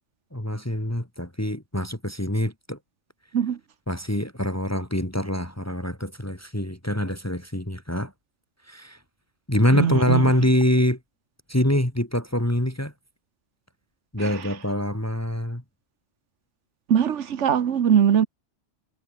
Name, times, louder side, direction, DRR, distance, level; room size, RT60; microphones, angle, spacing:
voice 1, 0.3-2.8 3.9-8.1 8.7-9.0 9.5-11.0 11.5-12.9 14.1-15.6, left 1 dB, 15° left, 2.7 m, -25 dB
voice 2, 9.7-10.3 14.2-14.5 16.9-18.3, right 8 dB, 85° right, 1.3 m, -21 dB
omnidirectional pair, 1.2 m